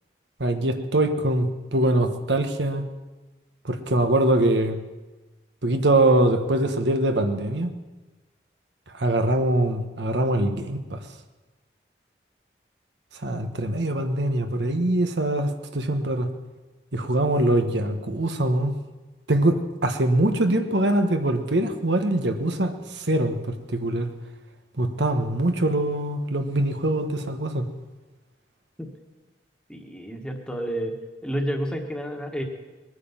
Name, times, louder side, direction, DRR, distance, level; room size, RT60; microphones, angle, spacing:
voice 1, 0.4-2.8 3.6-4.8 5.6-7.7 9.0-11.0 13.2-16.3 16.9-18.7 19.3-22.7 23.1-24.1 24.8-27.7, right 1 dB, 85° right, 7 dB, 1.3 m, -23 dB
voice 2, 29.7-30.9 31.2-32.4, equal, 5° left, 3 dB, 1.5 m, -30 dB
20.5 x 9.6 x 7.2 m, 1.2 s
head